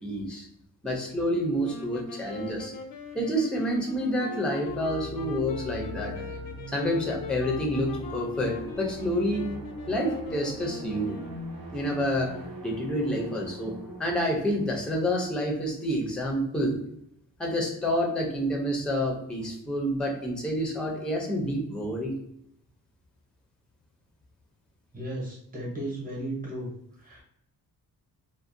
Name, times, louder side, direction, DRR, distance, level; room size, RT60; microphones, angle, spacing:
voice 1, 0.0-0.5 0.8-2.7 3.1-6.3 6.7-9.5 9.9-11.2 11.7-12.3 12.6-13.7 14.0-16.8 17.4-22.1, equal, 5° left, 1 dB, 0.4 m, -28 dB
sound 1, 1.6-11.6, left 5 dB, 75° left, 0.5 m, -40 dB
sound 2, 4.6-16.2, right 1 dB, 75° right, 0.7 m, -42 dB
voice 2, 24.9-27.2, right 1 dB, 25° right, -3 dB, 0.8 m, -35 dB
2.5 x 2.1 x 2.4 m, 0.74 s
wide cardioid pair, 150°, 36 cm